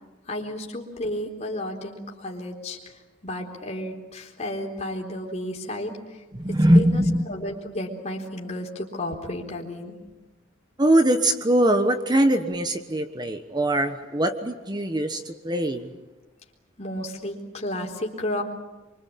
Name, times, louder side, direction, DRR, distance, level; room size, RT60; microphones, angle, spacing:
voice 1, 0.3-2.9 3.2-6.2 6.7-10.0 16.8-18.4, left 1 dB, 35° left, 0 dB, 3.8 m, -32 dB
voice 2, 6.3-7.2 10.8-15.9, right 1 dB, 20° right, 8 dB, 1.2 m, -21 dB
25.5 x 24.5 x 8.6 m, 1.1 s
head